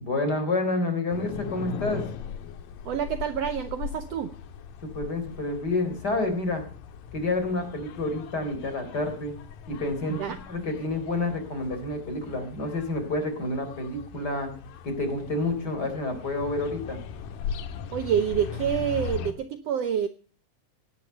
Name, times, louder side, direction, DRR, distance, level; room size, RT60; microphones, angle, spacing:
voice 1, 0.0-2.0 4.8-6.6 7.1-9.4 9.7-14.5 14.8-17.0, left 2 dB, 30° left, 7 dB, 4.0 m, -29 dB
sound 1, 1.1-19.3, left 7 dB, 80° left, 2.8 m, -39 dB
voice 2, 2.8-4.3 10.1-10.4 17.9-20.1, right 9 dB, 80° right, 11 dB, 1.4 m, -27 dB
17.0 x 10.5 x 6.7 m, 0.41 s
omnidirectional pair, 4.0 m